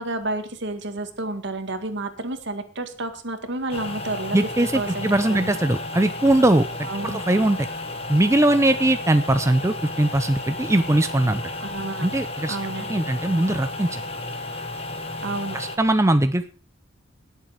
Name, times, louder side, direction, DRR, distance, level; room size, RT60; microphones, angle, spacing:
voice 1, 0.0-4.4 4.7-5.6 6.8-7.2 11.6-12.1 12.5-13.0 15.2-15.6, right 2 dB, 65° right, 7 dB, 1.9 m, -30 dB
sound 1, 3.7-15.8, left 2 dB, 30° left, 1.6 m, -33 dB
voice 2, 4.3-7.7 8.1-11.4 12.0-12.6 12.9-14.0 15.5-16.6, right 1 dB, 15° right, 9 dB, 0.6 m, -21 dB
19.0 x 7.4 x 5.0 m, 0.39 s
head